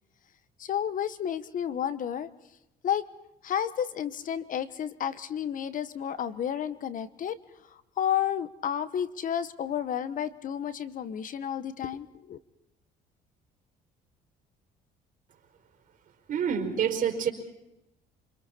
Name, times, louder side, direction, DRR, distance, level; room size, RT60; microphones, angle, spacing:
voice 1, 0.6-2.3 2.8-3.0 3.4-7.4 8.0-12.4, left 9 dB, 50° left, 15 dB, 1.1 m, -31 dB
voice 2, 16.3-17.3, right 7 dB, 50° right, 4 dB, 4.8 m, -27 dB
29.0 x 26.0 x 4.3 m, 0.90 s
cardioid pair, 110°, 17 cm